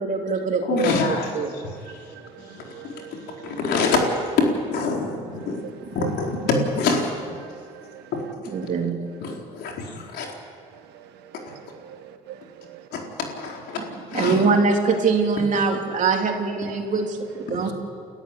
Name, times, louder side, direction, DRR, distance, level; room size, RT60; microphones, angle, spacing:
voice 1, 0.0-0.9 1.3-1.5 8.5-9.0 14.1-17.7, right 4 dB, 50° right, 3.4 m, -23 dB
voice 2, 0.6-5.6 5.9-7.2 8.1-8.5 9.2-10.3 11.5-11.6 12.9-14.4 17.6-17.7, left 3 dB, 75° left, 4.4 m, -26 dB
voice 3, 1.7-3.6 6.0-6.1 7.4-8.1 8.6-8.9 9.3-9.4 10.7-12.9, right 11 dB, 85° right, 1.6 m, -43 dB
30.0 x 14.0 x 8.4 m
cardioid pair, 110°, 17 cm